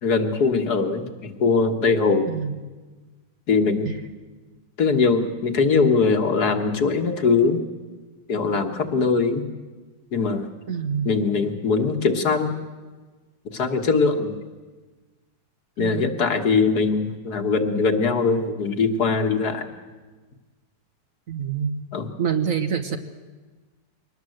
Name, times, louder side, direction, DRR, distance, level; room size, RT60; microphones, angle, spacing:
voice 1, 0.0-2.4 3.5-3.9 4.8-7.6 8.3-9.5 10.1-10.5 11.1-12.5 13.5-14.4 15.8-19.7 21.9-22.1, left 4 dB, 55° left, 6 dB, 1.9 m, -21 dB
voice 2, 10.7-11.1 15.8-16.2 21.3-21.8 22.2-23.0, right 7 dB, 50° right, 8 dB, 1.3 m, -26 dB
23.0 x 19.0 x 7.9 m, 1.3 s
omnidirectional pair, 2.0 m